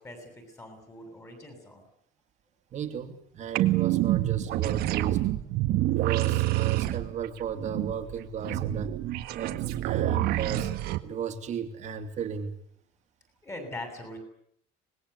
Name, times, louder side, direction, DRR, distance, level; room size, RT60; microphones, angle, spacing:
voice 1, 0.0-1.8 13.4-14.2, left 1 dB, 15° left, 6 dB, 7.4 m, -42 dB
voice 2, 2.7-5.2 5.9-8.9 9.3-10.7 11.0-12.5, right 6 dB, 40° right, 6 dB, 2.7 m, -35 dB
sound 1, 3.5-11.0, right 16 dB, 65° right, 1.6 m, -27 dB
25.5 x 20.0 x 8.2 m, 0.69 s
cardioid pair, 160°, 18 cm